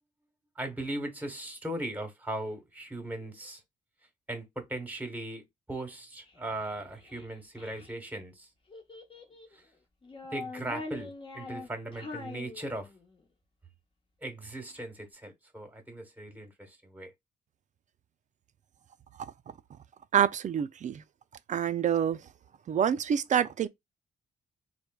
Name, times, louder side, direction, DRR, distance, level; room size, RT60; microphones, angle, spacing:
voice 1, 0.5-3.6 4.3-8.5 9.5-9.6 10.3-12.9 14.2-17.1, right 1 dB, 10° right, 1.1 m, -38 dB
Child speech kid speaking, 6.3-7.9 8.7-9.6 10.0-13.2, left 3 dB, 35° left, 0.9 m, -43 dB
voice 2, 20.1-21.0 21.5-22.2 22.7-23.7, right 9 dB, 50° right, 0.4 m, -26 dB
3.0 x 2.1 x 2.2 m
supercardioid pair, 60°, 16 cm